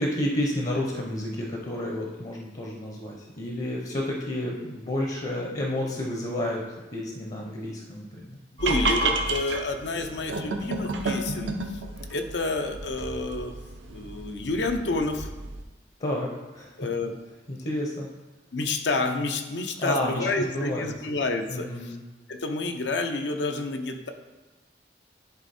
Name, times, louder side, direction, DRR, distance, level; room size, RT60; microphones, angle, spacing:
voice 1, 0.0-6.6 6.9-8.4 16.0-16.9 17.5-18.1 19.8-20.9 21.5-22.0, left 1 dB, 40° left, -1 dB, 0.8 m, -30 dB
voice 2, 8.6-11.8 12.1-13.5 13.9-15.3 16.8-17.2 18.5-22.0 22.3-24.1, left 3 dB, 75° left, 5 dB, 0.7 m, -29 dB
sound 1, 8.6-15.6, right 3 dB, 90° right, 0.7 m, -31 dB
10.5 x 3.6 x 4.2 m, 1.1 s
head